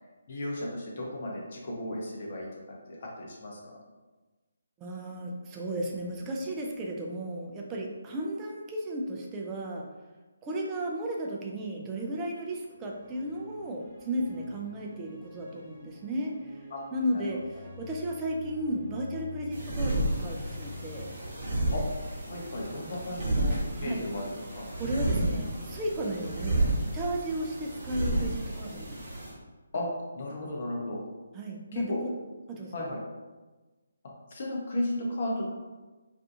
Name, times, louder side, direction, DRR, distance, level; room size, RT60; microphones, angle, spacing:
voice 1, 0.3-2.5 2.9-3.8 16.7-16.8 21.7-21.9 22.2-24.7 29.7-29.9 30.1-31.0 31.7-32.0 32.7-33.0 34.3-35.4, left 1 dB, 45° left, -2 dB, 0.7 m, -34 dB
voice 2, 4.8-9.9 10.4-16.6 16.9-17.4 17.8-21.1 23.7-24.1 24.8-26.7 26.9-29.1 31.3-31.9 32.5-32.7, right 1 dB, 15° right, -1 dB, 0.3 m, -34 dB
sound 1, 12.5-26.4, left 3 dB, 10° left, 1.0 m, -48 dB
sound 2, 19.5-29.3, right 1 dB, 35° right, 0.9 m, -31 dB
2.5 x 2.3 x 2.6 m, 1.2 s
figure-of-eight pair, 145°, 0 cm